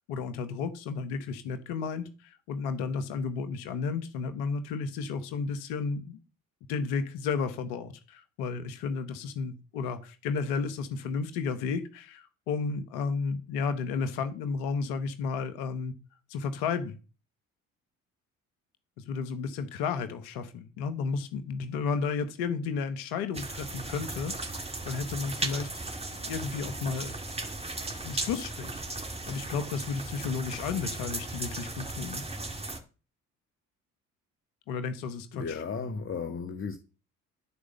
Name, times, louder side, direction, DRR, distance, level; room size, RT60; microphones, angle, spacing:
voice 1, 0.1-6.2 6.7-15.9 16.3-17.0 19.0-25.7 26.2-27.1 28.0-32.2 34.7-35.6, left 5 dB, 75° left, 1.1 m, -33 dB
sound 1, 23.3-32.8, right 2 dB, 15° right, 2.3 m, -36 dB
voice 2, 35.3-36.8, left 5 dB, 30° left, 1.1 m, -34 dB
11.0 x 4.9 x 6.6 m
hypercardioid pair, 55°, 40 cm